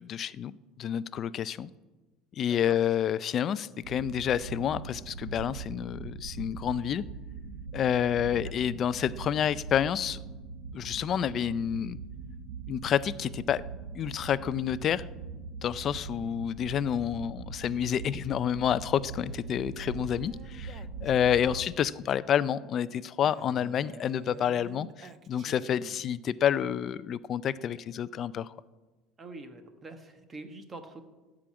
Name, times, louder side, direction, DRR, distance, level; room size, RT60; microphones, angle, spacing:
voice 1, 0.0-1.7 2.4-7.0 7.7-10.2 10.7-12.0 12.7-13.6 14.0-15.1 15.6-28.5, left 9 dB, 35° left, 16 dB, 0.4 m, -29 dB
voice 2, 2.4-2.8 8.3-8.5 21.5-21.6 29.2-31.0, right 2 dB, 20° right, 7 dB, 1.2 m, -45 dB
sound 1, 3.8-21.7, right 5 dB, 90° right, 1.1 m, -42 dB
Male speech man speaking, 18.6-21.6 23.2-26.2, right 6 dB, 35° right, 0.6 m, -51 dB
13.5 x 5.0 x 8.5 m, 1.2 s
cardioid pair, 140°, 0 cm